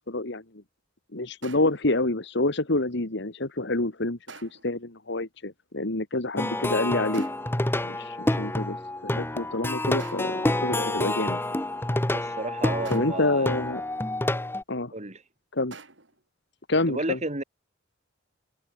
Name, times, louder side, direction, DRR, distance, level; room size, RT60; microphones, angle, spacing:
voice 1, 0.1-0.4 1.1-7.2 7.8-8.8 9.0-11.4 12.9-13.8 14.7-14.9 15.5-15.8 16.7-17.2, left 2 dB, 65° left, 2.1 m, -27 dB
sound 1, 1.4-1.9 4.3-4.8 7.1-7.6 10.0-10.5 12.8-13.4 15.7-16.2, right 4 dB, 70° right, 7.3 m, -47 dB
Plucked string instrument, 6.4-14.6, left 1 dB, 10° left, 1.0 m, -28 dB
voice 2, 12.1-13.5 14.9-15.2 16.9-17.4, right 2 dB, 35° right, 3.1 m, -32 dB
head